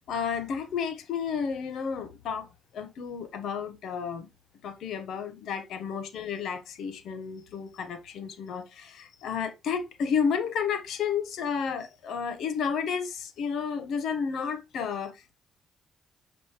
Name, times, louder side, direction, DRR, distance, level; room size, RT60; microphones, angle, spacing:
voice 1, 0.1-4.3 4.6-15.3, left 6 dB, 75° left, 1.2 m, -32 dB
7.4 x 5.0 x 3.2 m
cardioid pair, 90°, 0 cm